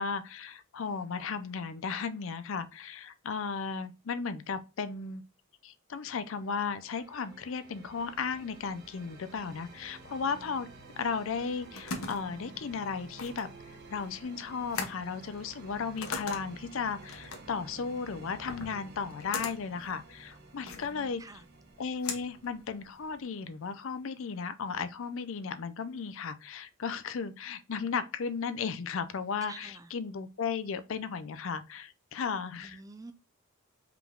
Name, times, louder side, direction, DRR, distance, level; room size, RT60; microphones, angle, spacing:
voice 1, 0.0-5.2 5.6-10.7 11.0-13.5 13.9-21.2 21.8-32.8, left 5 dB, 70° left, 0.5 m, -35 dB
sound 1, 6.2-24.0, right 3 dB, 55° right, 1.1 m, -52 dB
sound 2, 11.3-23.2, left 4 dB, 90° left, 0.9 m, -42 dB
voice 2, 20.6-21.4 29.5-29.9 32.6-33.1, right 3 dB, 15° right, 0.4 m, -49 dB
5.0 x 3.4 x 2.3 m
head